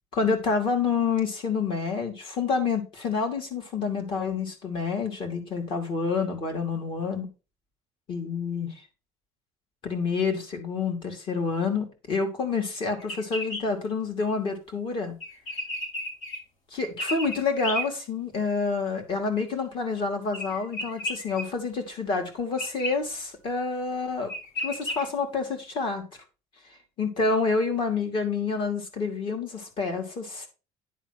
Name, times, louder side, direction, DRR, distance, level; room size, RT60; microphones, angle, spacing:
voice 1, 0.1-7.3 8.1-8.8 9.8-15.1 16.7-24.3 24.6-26.1 27.0-30.5, left 4 dB, 45° left, 4 dB, 2.6 m, -28 dB
sound 1, 13.0-13.6 15.2-16.4 17.0-17.8 20.3-21.4 22.6-22.9 23.9-24.0 24.3-25.0, left 1 dB, 90° left, 4.9 m, -33 dB
10.5 x 3.9 x 5.9 m, 0.31 s
cardioid pair, 165°, 13 cm